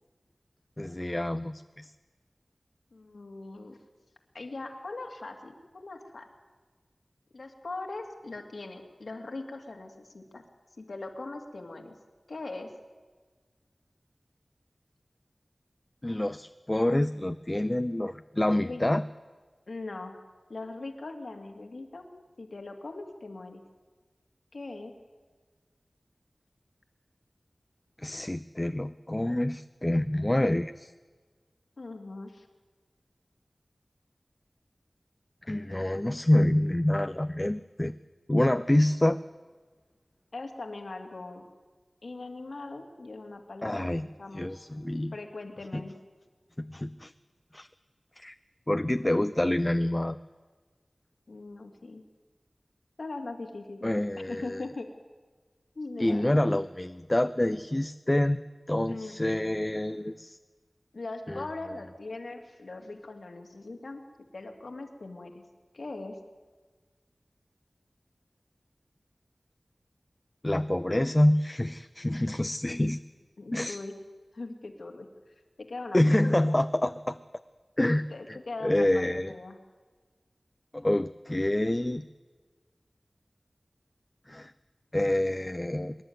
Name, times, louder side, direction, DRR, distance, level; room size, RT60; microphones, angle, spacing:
voice 1, 0.8-1.9 16.0-19.0 28.0-30.9 35.5-37.9 38.3-39.2 43.6-44.1 44.3-45.2 45.7-45.8 46.6-47.1 47.5-47.7 48.2-48.3 48.7-50.2 53.8-54.6 56.0-58.4 58.7-60.4 61.3-61.5 70.4-73.0 73.5-73.8 75.9-77.2 77.8-78.4 78.6-79.3 80.7-82.1 84.3-84.5 84.9-86.0, left 1 dB, 25° left, 11 dB, 0.5 m, -27 dB
voice 2, 2.9-3.8 4.3-6.3 7.3-10.4 10.8-11.9 12.3-12.7 18.4-18.8 19.7-20.2 20.5-22.1 22.4-23.6 24.5-24.9 31.8-32.5 40.3-41.5 42.0-44.7 45.1-46.0 51.3-52.0 53.0-53.9 54.3-54.9 55.8-56.3 58.9-59.2 60.9-64.1 64.3-65.4 65.7-66.2 72.7-72.8 73.4-74.0 74.3-76.0 76.4-76.6 78.1-79.6, left 2 dB, 85° left, 4 dB, 2.2 m, -40 dB
25.0 x 11.5 x 9.2 m, 1.4 s
wide cardioid pair, 55°, 0 cm